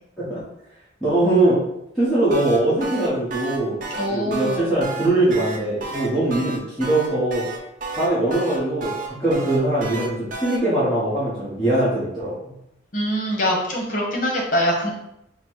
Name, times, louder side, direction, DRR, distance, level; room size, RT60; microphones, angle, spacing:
voice 1, 1.0-1.6 1.9-3.8 4.1-7.4 7.9-12.3, right 1 dB, 5° left, -13 dB, 1.0 m, -21 dB
sound 1, 2.1-10.6, right 3 dB, 45° right, 0.6 m, -32 dB
voice 2, 4.0-4.6 12.9-14.9, equal, 45° left, -1 dB, 1.0 m, -23 dB
4.1 x 2.0 x 4.5 m, 0.82 s
head